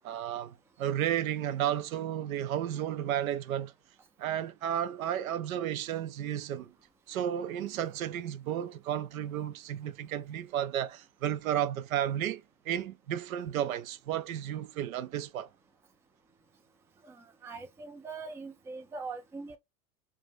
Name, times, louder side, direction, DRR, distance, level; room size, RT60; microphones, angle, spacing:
voice 1, 0.0-3.7 4.2-6.7 7.1-15.5, right 10 dB, 85° right, 0.5 m, -33 dB
voice 2, 17.4-19.6, right 4 dB, 5° right, 0.3 m, -42 dB
2.5 x 2.2 x 3.0 m
hypercardioid pair, 95°, 40 cm